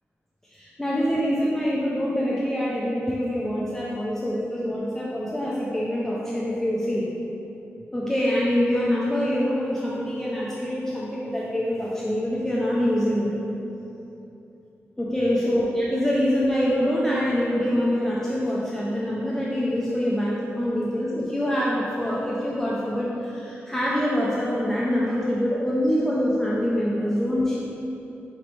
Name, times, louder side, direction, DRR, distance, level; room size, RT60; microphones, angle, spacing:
voice 1, 0.4-7.1 7.9-13.3 15.0-27.6, equal, 10° left, -6 dB, 0.4 m, -25 dB
4.9 x 3.2 x 3.0 m, 2.9 s
wide cardioid pair, 155°, 5 cm